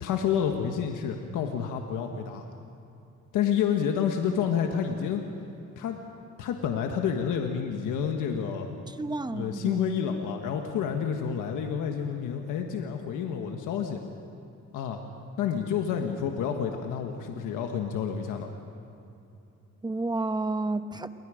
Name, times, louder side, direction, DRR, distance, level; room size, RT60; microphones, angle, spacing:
voice 1, 0.0-2.4 3.3-5.2 5.8-6.0 6.4-8.7 9.3-14.0 14.7-15.0 15.4-18.5, left 8 dB, 90° left, 4 dB, 1.5 m, -29 dB
voice 2, 8.9-9.8 19.8-21.1, right 2 dB, 15° right, 10 dB, 1.0 m, -31 dB
28.5 x 22.0 x 5.1 m, 2.8 s
cardioid pair, 90°, 30 cm